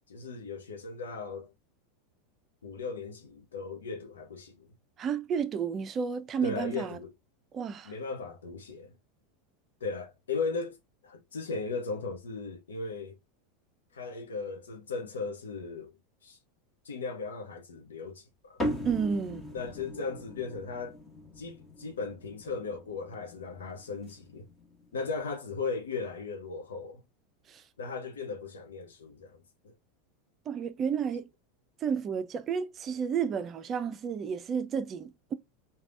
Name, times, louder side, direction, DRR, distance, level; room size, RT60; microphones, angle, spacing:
voice 1, 0.1-1.5 2.6-4.7 6.4-7.1 7.8-9.0 9.8-10.8 11.0-13.2 13.9-15.9 16.2-16.4 16.8-18.6 19.5-21.0 21.4-24.5 24.9-27.0 27.8-29.7, left 4 dB, 80° left, 0.8 m, -37 dB
voice 2, 5.0-7.0 7.5-7.9 18.8-19.5 27.5-27.6 30.5-31.3 31.8-35.3, right 7 dB, 35° right, 0.4 m, -31 dB
sound 1, 18.6-25.3, equal, 20° left, 1.3 m, -40 dB
3.3 x 2.3 x 2.5 m
figure-of-eight pair, 85°, 0 cm